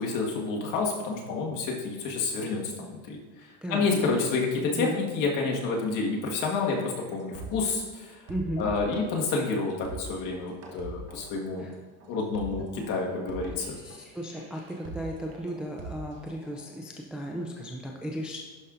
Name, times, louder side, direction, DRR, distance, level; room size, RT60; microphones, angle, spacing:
voice 1, 0.0-3.2 3.7-8.1 8.6-11.6 12.1-13.8, left 4 dB, 50° left, -1 dB, 1.7 m, -29 dB
voice 2, 3.6-4.1 4.6-5.0 8.3-8.7 11.6-11.7 13.8-18.4, right 1 dB, 5° right, -1 dB, 0.3 m, -35 dB
sound 1, 6.3-7.9 8.3-16.8, right 3 dB, 40° right, 1.2 m, -43 dB
11.0 x 5.4 x 2.6 m, 1.3 s
supercardioid pair, 130°, 39 cm